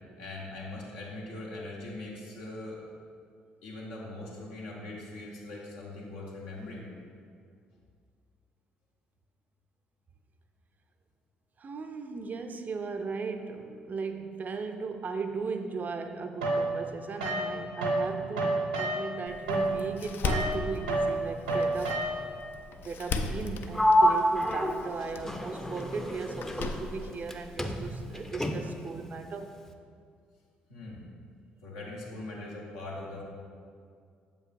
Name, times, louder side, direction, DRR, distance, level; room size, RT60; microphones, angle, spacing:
voice 1, 0.2-2.8 3.6-6.9 30.7-31.0 31.6-33.2, left 2 dB, 75° left, -4 dB, 1.2 m, -41 dB
voice 2, 11.6-22.0 22.8-29.6, right 4 dB, 40° right, 7 dB, 0.5 m, -37 dB
sound 1, 16.4-18.1 18.3-22.4, right 2 dB, 85° right, 0.8 m, -30 dB
Door, 19.3-28.2, left 3 dB, 55° left, 0.4 m, -38 dB
Sliding door, 23.7-27.3 27.6-28.9, equal, 10° left, 0.6 m, -28 dB
7.2 x 5.3 x 2.6 m, 2.2 s
hypercardioid pair, 50°, 4 cm